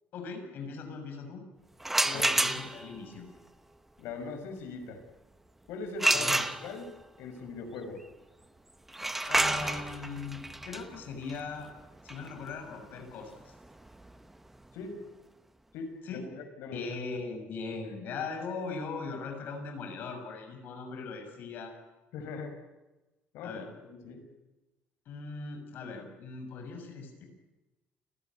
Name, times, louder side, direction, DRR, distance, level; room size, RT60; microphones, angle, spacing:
voice 1, 0.1-1.4 2.0-3.3 6.1-6.4 9.3-11.7 12.0-13.5 16.0-16.2 16.7-21.7 23.4-23.7 25.1-27.2, left 4 dB, 50° left, 4 dB, 6.3 m, -39 dB
sound 1, 1.8-3.0 6.0-7.0 8.9-14.6, right 1 dB, 5° right, 0.9 m, -30 dB
voice 2, 4.0-5.0 5.7-6.3 6.6-8.0 14.7-15.1 15.7-16.9 22.1-22.6 23.3-24.3, left 4 dB, 85° left, 4 dB, 6.1 m, -41 dB
29.5 x 15.0 x 9.6 m, 1.1 s
cardioid pair, 180°, 4 cm